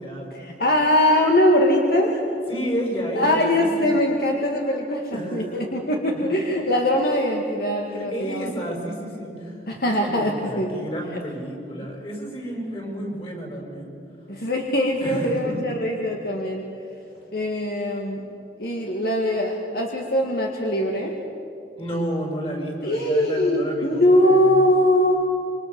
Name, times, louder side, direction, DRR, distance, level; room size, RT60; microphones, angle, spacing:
voice 1, 0.3-2.2 3.2-8.5 9.7-10.7 14.3-16.6 17.3-18.2 18.6-21.2 22.8-25.1, left 1 dB, 60° left, 1 dB, 2.2 m, -21 dB
voice 2, 2.5-3.9 5.1-5.6 6.1-6.2 7.9-13.9 15.0-15.6 21.8-24.6, equal, 30° left, 1 dB, 5.9 m, -31 dB
27.5 x 24.0 x 7.0 m, 2.8 s
head